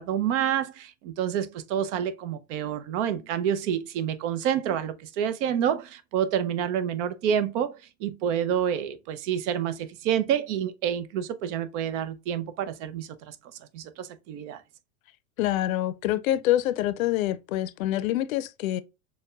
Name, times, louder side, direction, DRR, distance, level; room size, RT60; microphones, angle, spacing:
voice 1, 0.0-13.4 13.7-14.6, right 9 dB, 60° right, 0.6 m, -28 dB
voice 2, 15.4-18.8, left 13 dB, 80° left, 0.5 m, -26 dB
6.4 x 2.2 x 2.3 m
hypercardioid pair, 100°, 41 cm